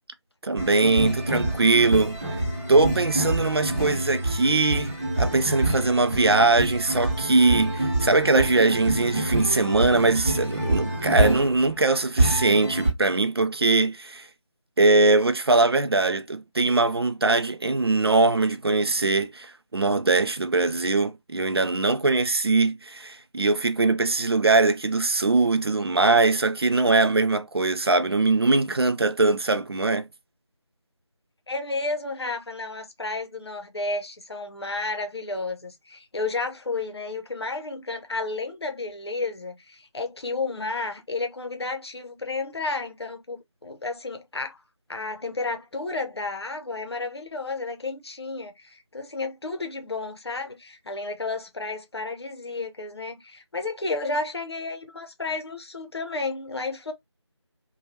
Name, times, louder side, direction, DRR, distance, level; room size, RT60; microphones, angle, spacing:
voice 1, 0.4-2.2 2.7-14.3 14.8-30.1, right 3 dB, 55° right, 0.4 m, -21 dB
sound 1, 0.6-12.9, right 1 dB, 30° right, 1.1 m, -26 dB
voice 2, 31.5-44.6 44.9-56.9, left 3 dB, 60° left, 0.7 m, -32 dB
2.8 x 2.2 x 3.2 m
figure-of-eight pair, 165°, 15 cm